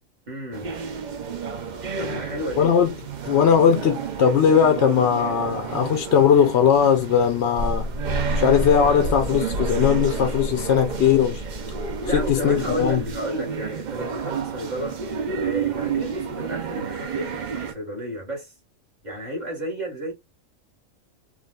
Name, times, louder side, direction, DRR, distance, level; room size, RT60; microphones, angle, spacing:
voice 1, 0.3-0.7 2.0-2.7 12.0-15.0 15.4-18.5 19.0-20.1, right 1 dB, 35° right, 1.5 m, -32 dB
sound 1, 0.5-17.7, right 6 dB, 50° right, 0.5 m, -31 dB
voice 2, 2.6-2.9 3.3-7.9 8.4-11.4 12.1-13.0, left 8 dB, 65° left, 0.8 m, -19 dB
sound 2, 7.5-13.2, equal, 75° right, 1.6 m, -30 dB
4.8 x 2.4 x 2.3 m
omnidirectional pair, 1.4 m